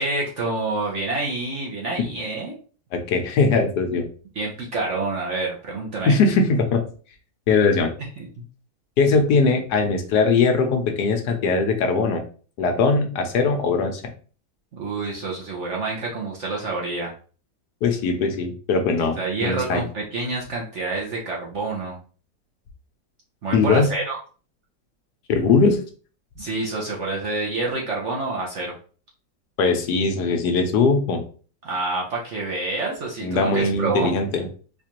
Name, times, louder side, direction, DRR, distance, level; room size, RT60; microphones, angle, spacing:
voice 1, 0.0-2.5 4.3-6.1 8.2-8.3 14.7-17.1 18.9-22.0 23.4-24.2 26.4-28.7 31.6-34.1, right 3 dB, 55° right, -2 dB, 0.8 m, -27 dB
voice 2, 2.9-4.0 6.1-6.8 7.5-7.9 9.0-12.2 12.6-14.0 17.8-19.8 23.5-23.9 25.3-25.8 29.6-31.2 33.2-34.5, left 4 dB, 75° left, 4 dB, 1.2 m, -20 dB
4.3 x 2.5 x 2.9 m, 0.39 s
omnidirectional pair, 1.9 m